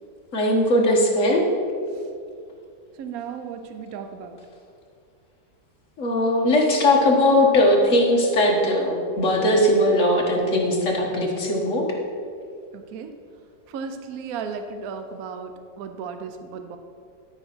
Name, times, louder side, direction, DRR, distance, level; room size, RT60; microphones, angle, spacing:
voice 1, 0.3-1.4 6.0-11.8, left 1 dB, 45° left, -1 dB, 1.8 m, -19 dB
voice 2, 3.0-4.4 12.7-13.2 13.7-16.8, right 6 dB, 65° right, 7 dB, 1.0 m, -35 dB
12.5 x 4.8 x 6.1 m, 2.3 s
omnidirectional pair, 1.9 m